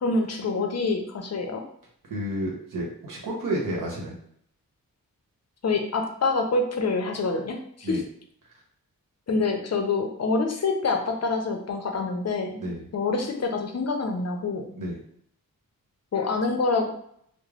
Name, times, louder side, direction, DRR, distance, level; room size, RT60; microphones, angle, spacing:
voice 1, 0.0-1.6 5.6-8.0 9.3-14.7 16.1-16.9, left 3 dB, 45° left, 3 dB, 0.6 m, -26 dB
voice 2, 2.1-4.1 7.8-8.0 12.6-12.9 14.8-15.0, right 1 dB, 60° right, -3 dB, 1.0 m, -30 dB
3.0 x 2.0 x 2.4 m, 0.67 s
cardioid pair, 55°, 36 cm